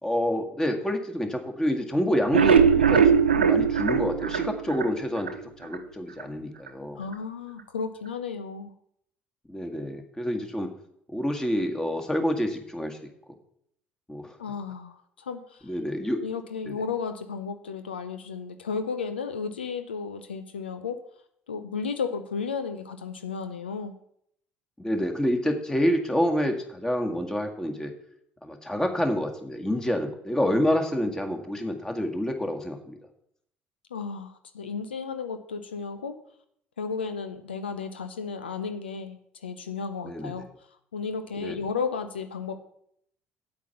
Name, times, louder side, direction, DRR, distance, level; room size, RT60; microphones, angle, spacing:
voice 1, 0.0-7.0 9.5-10.7 11.1-13.0 14.1-14.4 15.7-16.2 16.7-16.8 24.8-27.9 28.4-33.0 40.0-40.4 41.4-41.6, equal, 10° left, 4 dB, 1.9 m, -28 dB
sound 1, 2.1-5.4 5.7-5.8 6.2-6.3 6.7-6.8, right 7 dB, 90° right, 0.5 m, -20 dB
voice 2, 7.0-8.7 14.4-15.7 16.1-21.0 21.5-23.9 33.9-36.2 36.8-40.4 40.9-42.6, left 5 dB, 85° left, 9 dB, 0.6 m, -33 dB
8.6 x 8.3 x 5.7 m, 0.70 s
figure-of-eight pair, 55°, 6 cm